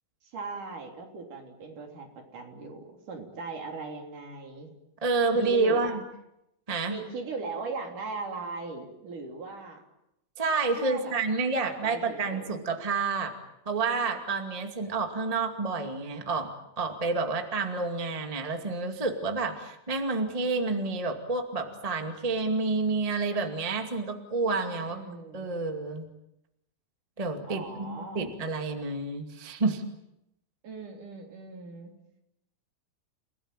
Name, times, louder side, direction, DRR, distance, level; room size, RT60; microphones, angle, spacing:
voice 1, 0.2-4.7 5.3-6.0 6.9-9.8 10.8-11.2 11.6-12.6 24.9-25.5 27.5-28.3 30.6-31.9, right 3 dB, 60° right, 2 dB, 4.8 m, -39 dB
voice 2, 5.0-6.0 6.7-7.0 10.4-13.3 13.7-16.5 16.8-25.0 25.3-26.1 27.2-29.8, right 3 dB, 15° right, 4 dB, 1.8 m, -29 dB
29.5 x 18.0 x 9.0 m, 0.85 s
omnidirectional pair, 4.2 m